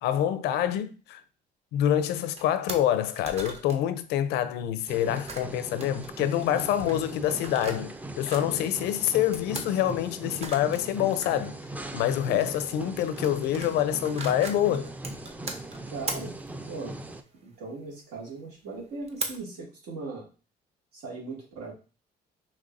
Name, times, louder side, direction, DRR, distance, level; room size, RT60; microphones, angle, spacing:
voice 1, 0.0-1.2 1.7-11.6 11.9-14.9, left 11 dB, 85° left, 0.5 m, -26 dB
sound 1, 1.9-2.1 2.4-2.5 2.7-2.8 3.1-3.8 5.0-8.5 9.3-9.7 10.2-10.8 11.1-11.3 12.3-12.6 12.9-13.8 14.1-17.7 18.4-18.5 18.8-19.4, right 3 dB, 40° right, 0.8 m, -39 dB
sound 2, 4.9-17.2, right 2 dB, 10° right, 0.4 m, -39 dB
voice 2, 15.9-16.3 16.6-17.0 17.4-20.3 20.9-21.7, right 3 dB, 85° right, 2.1 m, -38 dB
5.3 x 3.1 x 2.6 m
cardioid pair, 110°, 17 cm